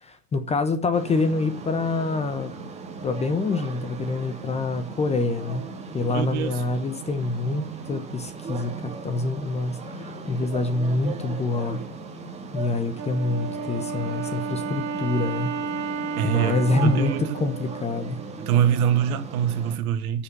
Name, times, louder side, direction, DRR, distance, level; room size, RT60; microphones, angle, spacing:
voice 1, 0.0-2.5 3.0-5.7 5.9-11.8 12.5-15.5 16.2-18.2, left 3 dB, 15° left, 1.0 m, -26 dB
sound 1, 0.9-19.8, right 4 dB, 15° right, 2.6 m, -38 dB
voice 2, 6.1-6.5 16.2-17.4 18.5-20.2, right 9 dB, 60° right, 2.1 m, -24 dB
Wind instrument woodwind instrument, 13.0-18.4, right 4 dB, 30° right, 2.1 m, -32 dB
9.7 x 7.4 x 8.3 m
hypercardioid pair, 130°, 49 cm